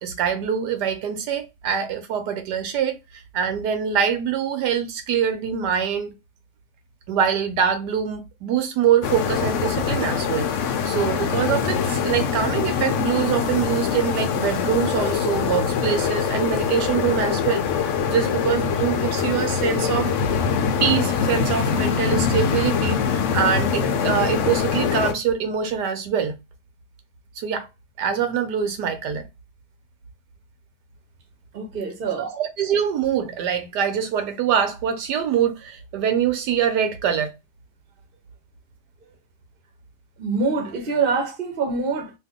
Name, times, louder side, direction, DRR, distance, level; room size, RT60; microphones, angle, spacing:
voice 1, 0.0-3.0 3.3-6.1 7.1-17.7 18.1-20.1 20.8-26.4 27.4-27.7 28.0-29.2 32.2-37.3, right 8 dB, 80° right, 1.3 m, -24 dB
sound 1, 9.0-25.1, left 6 dB, 70° left, 0.7 m, -23 dB
voice 2, 31.5-32.3 40.2-42.1, right 4 dB, 40° right, 0.9 m, -25 dB
2.8 x 2.5 x 3.5 m
omnidirectional pair, 1.8 m